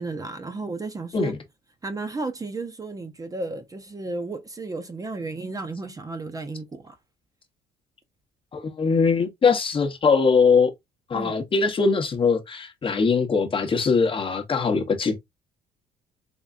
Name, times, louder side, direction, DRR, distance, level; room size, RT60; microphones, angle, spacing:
voice 1, 0.0-1.3 1.8-6.9 11.1-11.3, right 3 dB, 20° right, 0.6 m, -33 dB
voice 2, 8.5-10.7 11.1-15.2, left 5 dB, 30° left, 0.8 m, -21 dB
3.6 x 3.2 x 2.3 m
cardioid pair, 110°, 17 cm